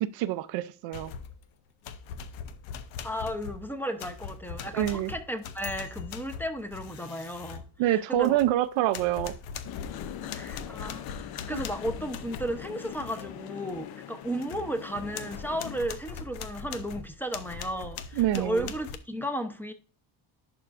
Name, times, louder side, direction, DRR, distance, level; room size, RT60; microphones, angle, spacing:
voice 1, 0.0-1.1 4.7-5.1 7.8-9.3 11.5-11.6 18.2-18.7, right 13 dB, 80° right, 0.7 m, -26 dB
sound 1, 0.9-1.4 1.8-8.6 8.9-13.3 13.7-13.8 14.2-19.0, left 6 dB, 90° left, 0.8 m, -41 dB
voice 2, 3.0-8.4 10.3-19.7, equal, 5° left, 0.8 m, -34 dB
sound 2, 9.6-15.8, left 11 dB, 55° left, 0.6 m, -42 dB
11.0 x 4.6 x 2.5 m
cardioid pair, 105°, 46 cm